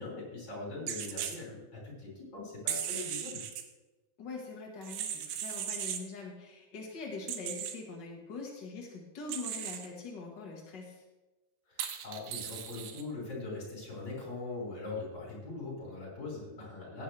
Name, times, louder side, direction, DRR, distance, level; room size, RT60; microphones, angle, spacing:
voice 1, 0.0-3.4 11.7-17.0, left 3 dB, 30° left, -4 dB, 5.3 m, -41 dB
sound 1, 0.9-1.4 2.7-3.6 4.8-6.0 7.3-7.7 9.3-9.9 11.8-13.0, right 9 dB, 75° right, 2.5 m, -37 dB
voice 2, 4.2-11.0, left 3 dB, 55° left, -1 dB, 1.2 m, -43 dB
16.0 x 10.0 x 3.3 m, 1.1 s
omnidirectional pair, 4.6 m